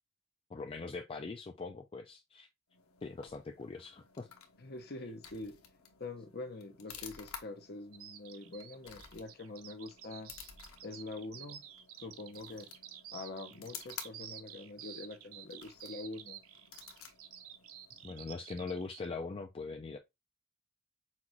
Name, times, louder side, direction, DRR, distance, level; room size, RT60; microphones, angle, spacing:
voice 1, 0.5-2.5 3.0-4.3 18.0-20.0, left 4 dB, 25° left, 0.4 m, -42 dB
sound 1, 2.7-18.3, left 7 dB, 80° left, 1.0 m, -53 dB
voice 2, 4.6-5.6 6.0-10.3 10.8-11.6 12.0-12.7 13.1-16.4, left 2 dB, 50° left, 0.9 m, -45 dB
Bird vocalization bird call bird song, 7.9-19.1, right 10 dB, 75° right, 0.7 m, -50 dB
5.8 x 2.5 x 3.0 m
head